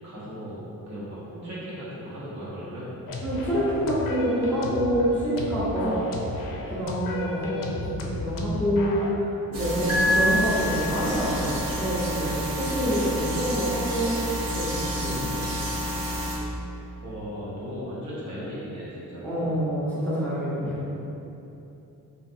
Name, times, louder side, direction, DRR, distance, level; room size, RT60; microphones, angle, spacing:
voice 1, 0.0-2.9 17.0-19.5, equal, 55° right, -9 dB, 1.0 m, -37 dB
sound 1, 3.1-9.1, left 2 dB, 70° left, 0.5 m, -33 dB
voice 2, 3.2-5.9 6.6-11.5 11.8-14.2 14.5-15.5 19.2-20.8, equal, 5° left, -11 dB, 0.8 m, -27 dB
sound 2, 9.5-16.4, equal, 90° right, 0.7 m, -30 dB
sound 3, 9.9-11.4, left 1 dB, 15° right, 1.0 m, -25 dB
3.8 x 2.5 x 2.6 m, 2.9 s
cardioid pair, 125°, 34 cm